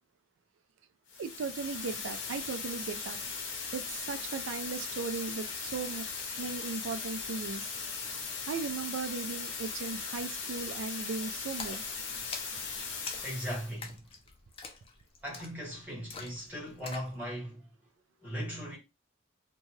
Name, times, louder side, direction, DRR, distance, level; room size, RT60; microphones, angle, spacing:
sound 1, 1.1-13.7, left 5 dB, 70° left, 0.7 m, -38 dB
voice 1, 1.2-3.2 3.7-6.1 6.4-7.7 8.5-11.8, right 4 dB, 85° right, 0.4 m, -37 dB
Splash splatter, 11.6-17.1, left 4 dB, 30° left, 0.4 m, -46 dB
voice 2, 13.2-14.0 15.2-17.7 18.2-18.8, equal, 10° right, 1.6 m, -38 dB
2.7 x 2.2 x 3.1 m
head